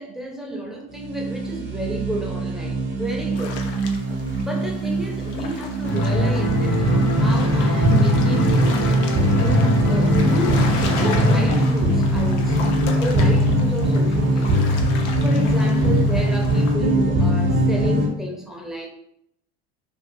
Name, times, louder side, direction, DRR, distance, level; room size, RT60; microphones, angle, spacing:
voice 1, 0.0-3.6 4.1-8.5 9.4-12.7 13.0-14.7 15.2-18.9, right 1 dB, ahead, -1 dB, 0.6 m, -31 dB
sound 1, 0.9-18.1, equal, 35° right, 0.7 m, -21 dB
sound 2, 3.4-16.7, left 4 dB, 85° left, 0.6 m, -35 dB
sound 3, 5.8-11.4, equal, 65° left, 1.0 m, -23 dB
2.6 x 2.4 x 2.6 m, 0.75 s
supercardioid pair, 95°, 34 cm